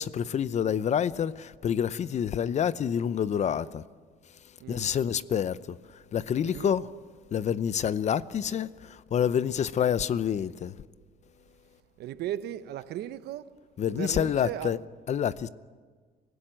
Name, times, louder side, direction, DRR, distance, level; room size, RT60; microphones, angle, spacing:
voice 1, 0.0-3.8 4.7-5.8 6.1-6.9 7.3-10.7 13.8-14.8 15.1-15.5, left 8 dB, 45° left, 0.7 m, -27 dB
voice 2, 12.0-13.4 13.9-14.7, right 12 dB, 75° right, 1.0 m, -36 dB
25.0 x 16.5 x 9.0 m
cardioid pair, 110°, 17 cm